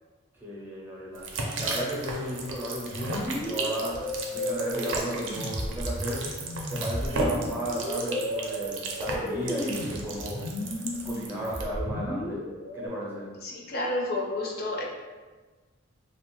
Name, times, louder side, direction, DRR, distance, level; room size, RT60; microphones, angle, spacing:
voice 1, 0.4-1.3 1.6-6.3 6.7-10.5 11.0-12.5 12.7-13.3, right 1 dB, 10° right, -5 dB, 0.5 m, -34 dB
sound 1, 1.1-11.6, right 2 dB, 65° right, 0.4 m, -35 dB
sound 2, 2.9-12.9, left 1 dB, 85° left, 0.7 m, -34 dB
voice 2, 13.4-14.8, left 2 dB, 50° left, -2 dB, 0.4 m, -30 dB
2.8 x 2.2 x 2.9 m, 1.3 s
head